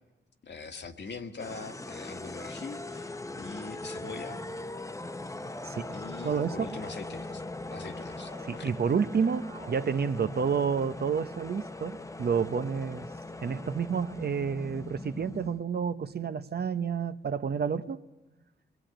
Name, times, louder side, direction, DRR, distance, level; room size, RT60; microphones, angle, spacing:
voice 1, 0.4-4.4 5.9-7.4 7.7-8.7, left 4 dB, 65° left, 1.7 m, -43 dB
sound 1, 1.4-15.6, left 2 dB, 15° left, 0.9 m, -40 dB
sound 2, 3.0-3.2 4.2-4.6 5.4-5.9 6.5-7.2 7.7-8.6 8.8-9.9, right 3 dB, 40° right, 2.2 m, -53 dB
voice 2, 5.6-6.0 6.2-6.7 8.5-13.1 13.4-18.0, right 6 dB, 60° right, 0.9 m, -30 dB
28.5 x 21.0 x 9.0 m
cardioid pair, 75°, 19 cm